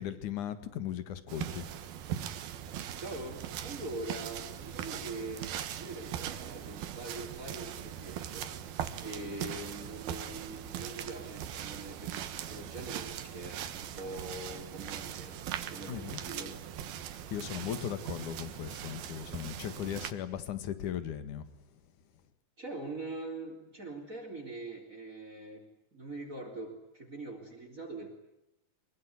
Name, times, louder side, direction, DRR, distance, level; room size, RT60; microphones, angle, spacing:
voice 1, 0.0-1.7 15.9-16.1 17.3-21.4, left 10 dB, 60° left, 12 dB, 3.0 m, -37 dB
sound 1, 1.3-20.1, right 10 dB, 80° right, 3.3 m, -40 dB
voice 2, 3.0-8.5 9.0-15.4 15.7-16.8 22.6-28.1, right 2 dB, 20° right, 5 dB, 3.7 m, -43 dB
23.5 x 23.0 x 9.6 m, 0.87 s
omnidirectional pair, 4.2 m